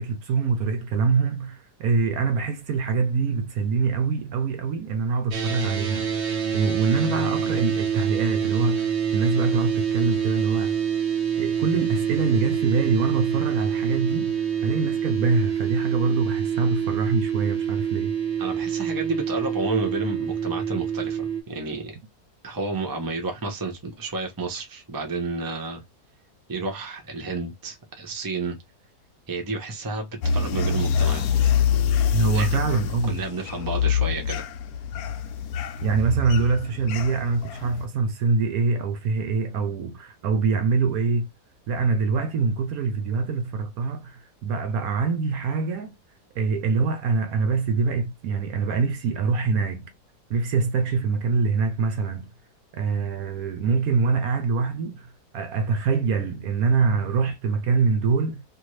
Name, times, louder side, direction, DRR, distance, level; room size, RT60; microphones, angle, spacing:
voice 1, 0.0-6.2 6.5-10.8 11.4-18.2 32.1-33.2 35.8-41.3 41.7-45.9 46.3-49.9 50.3-52.3 52.7-58.4, right 4 dB, 70° right, 1.0 m, -24 dB
sound 1, 5.3-21.4, right 8 dB, 50° right, 1.0 m, -26 dB
voice 2, 18.4-22.0 22.4-25.8 26.5-28.6 29.3-31.5 32.3-32.5 33.0-34.4, right 3 dB, 25° right, 0.5 m, -31 dB
sound 2, 30.2-37.9, left 6 dB, 70° left, 1.0 m, -25 dB
2.7 x 2.6 x 3.1 m
omnidirectional pair, 1.7 m